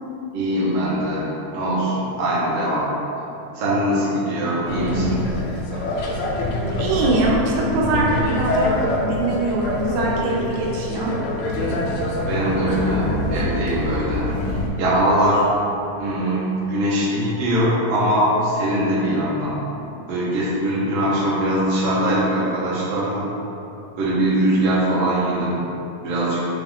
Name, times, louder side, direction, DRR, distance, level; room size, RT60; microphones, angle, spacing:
voice 1, 0.3-1.3 1.5-2.9 3.5-5.2 11.6-11.8 12.3-14.4 14.8-15.5 16.0-19.6 20.1-23.3 24.0-25.6 26.0-26.4, right 1 dB, 65° right, -7 dB, 1.5 m, -21 dB
sound 1, 4.6-14.7, left 1 dB, 80° left, 1.5 m, -25 dB
voice 2, 6.7-11.2, right 2 dB, 85° right, -3 dB, 2.1 m, -22 dB
4.8 x 2.4 x 3.5 m, 2.8 s
omnidirectional pair, 3.4 m